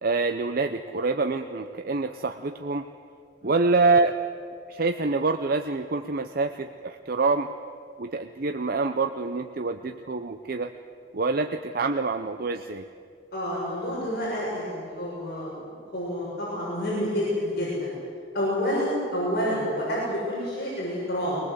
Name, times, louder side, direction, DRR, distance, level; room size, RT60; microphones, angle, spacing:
voice 1, 0.0-2.9 3.4-4.2 4.7-7.5 8.0-10.7 11.1-12.9, right 3 dB, 50° right, 7 dB, 0.7 m, -26 dB
voice 2, 13.3-17.9 18.3-21.4, equal, 55° left, -6 dB, 6.9 m, -29 dB
22.5 x 20.0 x 8.0 m, 2.4 s
head